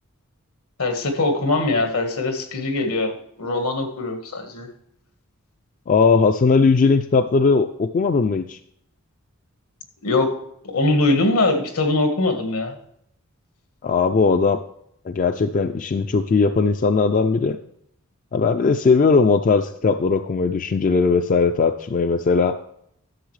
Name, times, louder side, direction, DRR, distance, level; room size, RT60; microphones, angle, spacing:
voice 1, 0.8-3.1 3.4-4.7 10.0-10.3 10.7-12.8, left 2 dB, 80° left, 5 dB, 1.6 m, -21 dB
voice 2, 5.9-8.6 13.8-14.6 15.1-17.6 18.3-22.6, left 4 dB, 35° left, 8 dB, 0.3 m, -18 dB
11.5 x 7.0 x 3.2 m, 0.73 s
head